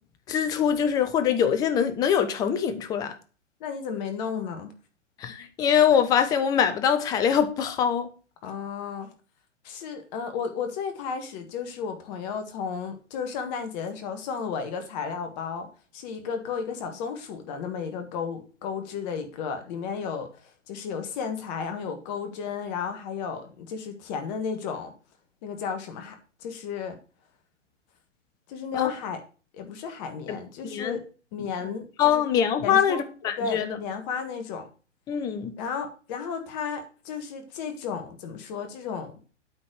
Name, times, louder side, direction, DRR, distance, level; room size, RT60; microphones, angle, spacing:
voice 1, 0.3-3.1 5.2-8.1 28.7-28.9 30.3-30.4 30.7-31.0 32.0-33.8 35.1-35.5, left 8 dB, 10° left, 0.4 m, -23 dB
voice 2, 3.6-4.7 8.4-9.1 9.6-20.3 20.7-24.9 25.4-27.0 28.5-29.2 29.5-31.0 31.3-32.2 32.6-33.1 33.4-34.7 35.6-39.1, left 6 dB, 35° left, 1.6 m, -33 dB
8.7 x 4.3 x 6.3 m
figure-of-eight pair, 120°, 37 cm